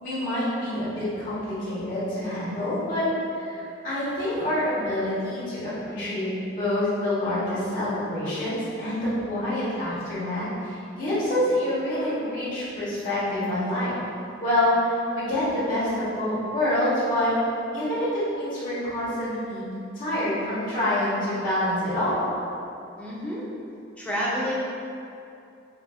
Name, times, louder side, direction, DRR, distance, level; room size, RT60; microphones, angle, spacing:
voice 1, 0.0-3.1 3.3-13.9 14.4-17.3 17.7-19.6 19.9-22.3, left 1 dB, 45° left, -12 dB, 1.0 m, -27 dB
voice 2, 23.0-23.5 24.0-24.5, equal, 5° left, -7 dB, 0.6 m, -29 dB
3.9 x 2.5 x 2.3 m, 2.6 s
head